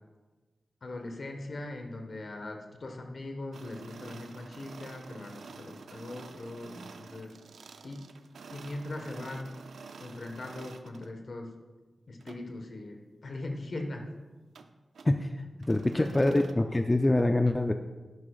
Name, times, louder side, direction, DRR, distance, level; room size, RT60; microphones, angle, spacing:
voice 1, 0.8-7.3 7.8-8.0 8.5-9.5 10.0-11.5 12.1-14.1 15.8-16.5, left 2 dB, 60° left, 4 dB, 1.4 m, -40 dB
sound 1, 3.5-11.1 12.2-12.4 14.5-14.7 14.9-15.1 15.6-16.5, right 5 dB, 85° right, 0.5 m, -49 dB
voice 2, 15.7-17.7, left 1 dB, 25° left, 6 dB, 0.5 m, -25 dB
11.0 x 11.0 x 2.4 m, 1.3 s
cardioid pair, 40°, 0 cm